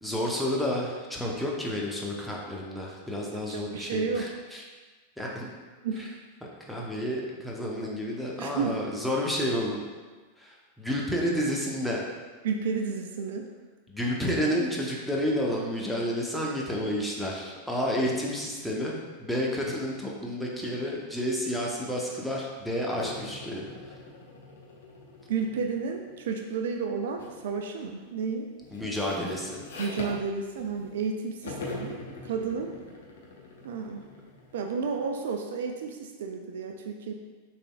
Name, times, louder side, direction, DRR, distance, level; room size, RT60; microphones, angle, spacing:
voice 1, 0.0-4.6 5.2-5.5 6.7-9.8 10.4-12.0 13.9-23.6 28.7-29.6, equal, ahead, -3 dB, 0.8 m, -30 dB
voice 2, 3.5-4.3 5.8-6.2 8.4-8.8 12.4-13.5 25.3-28.5 29.8-32.7 33.6-34.0 34.5-37.1, right 5 dB, 60° right, 3 dB, 0.4 m, -32 dB
sound 1, 23.0-26.3 27.2-27.5 27.8-31.1 31.4-35.0, left 2 dB, 60° left, 0.9 m, -43 dB
6.6 x 3.5 x 2.3 m, 1.4 s
figure-of-eight pair, 90°, 0 cm